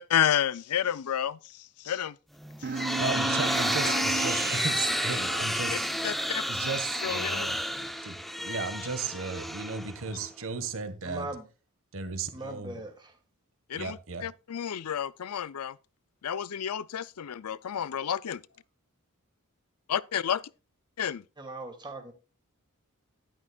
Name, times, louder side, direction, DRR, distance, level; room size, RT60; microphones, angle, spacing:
voice 1, 0.0-2.2 2.6-2.8 3.8-4.0 6.0-6.4 7.0-7.5 13.7-15.8 16.2-18.4 19.9-20.4 21.0-21.2, left 9 dB, 90° left, 0.5 m, -30 dB
sound 1, 2.4-10.3, equal, ahead, 0.7 m, -31 dB
sound 2, 2.6-5.9, right 5 dB, 45° right, 0.5 m, -35 dB
voice 2, 3.0-5.9 6.5-11.3 11.9-12.8 13.7-14.3, right 4 dB, 65° right, 1.5 m, -35 dB
voice 3, 11.0-11.5 12.3-13.1 21.4-22.1, right 2 dB, 20° right, 2.3 m, -40 dB
11.5 x 10.5 x 2.3 m
head